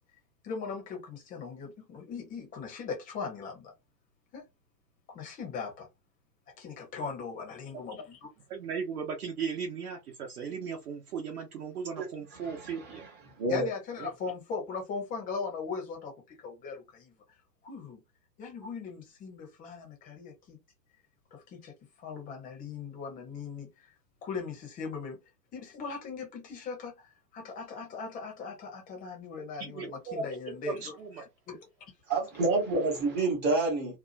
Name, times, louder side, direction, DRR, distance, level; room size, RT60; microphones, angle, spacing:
voice 1, 0.4-3.7 4.3-4.5 5.1-5.9 6.6-8.3 13.5-17.1 17.6-18.0 18.4-20.6 21.3-23.9 24.2-25.2 25.5-30.9 31.5-31.9, left 5 dB, 15° left, 0.9 m, -39 dB
voice 2, 8.5-13.0 14.0-14.1 29.6-31.2, right 6 dB, 60° right, 1.0 m, -37 dB
voice 3, 12.4-13.0 13.4-13.7 32.1-34.0, right 3 dB, 20° right, 1.1 m, -28 dB
2.8 x 2.3 x 2.5 m
figure-of-eight pair, 115°, 50 cm